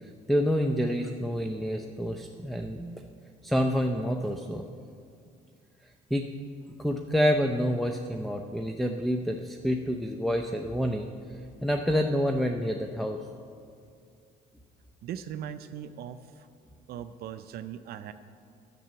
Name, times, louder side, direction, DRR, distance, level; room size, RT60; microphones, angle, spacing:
voice 1, 0.3-3.0 3.4-4.6 6.1-6.2 6.8-11.1 11.6-13.2, equal, ahead, 4 dB, 0.6 m, -28 dB
voice 2, 15.0-16.5 16.9-18.1, right 9 dB, 65° right, 10 dB, 0.5 m, -39 dB
10.5 x 6.9 x 8.9 m, 2.3 s
cardioid pair, 110°, 17 cm